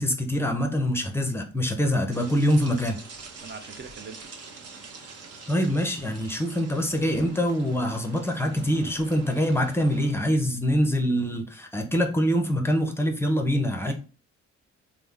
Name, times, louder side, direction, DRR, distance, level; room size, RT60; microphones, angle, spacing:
voice 1, 0.0-3.0 5.5-13.9, equal, 10° left, 0.6 m, -24 dB
sound 1, 2.1-10.1, right 4 dB, 55° right, 0.8 m, -45 dB
voice 2, 3.4-4.2 5.0-5.1 13.8-13.9, right 5 dB, 35° right, 0.4 m, -41 dB
3.1 x 2.0 x 3.6 m
cardioid pair, 90°, 30 cm